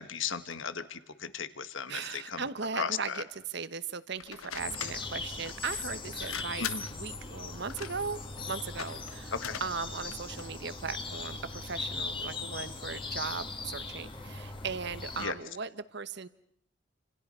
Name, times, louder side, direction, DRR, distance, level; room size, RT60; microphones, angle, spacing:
voice 1, 0.0-2.4 2.7-3.2 6.6-6.8 9.3-9.6 15.2-15.3, left 6 dB, 65° left, 12 dB, 1.5 m, -36 dB
voice 2, 1.9-8.2 8.5-16.3, right 5 dB, 55° right, 14 dB, 1.0 m, -38 dB
sound 1, 4.2-10.5, left 8 dB, 90° left, 1.3 m, -43 dB
sound 2, 4.6-15.3, left 3 dB, 25° left, 2.2 m, -39 dB
29.0 x 27.0 x 5.6 m, 0.70 s
head